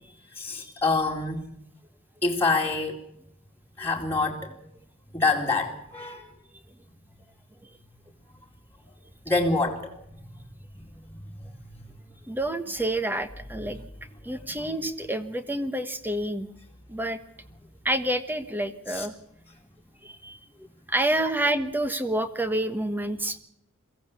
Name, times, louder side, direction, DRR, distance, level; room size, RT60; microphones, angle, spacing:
voice 1, 0.4-1.4 2.2-3.0 3.8-4.7 5.1-6.3 9.3-9.9 18.9-19.1, left 3 dB, 10° left, -2 dB, 2.4 m, -26 dB
voice 2, 12.3-13.8 14.2-16.5 16.9-17.2 17.8-19.1 20.0-20.4 20.9-23.4, right 1 dB, 10° right, 10 dB, 1.3 m, -28 dB
22.5 x 16.0 x 8.3 m, 0.76 s
head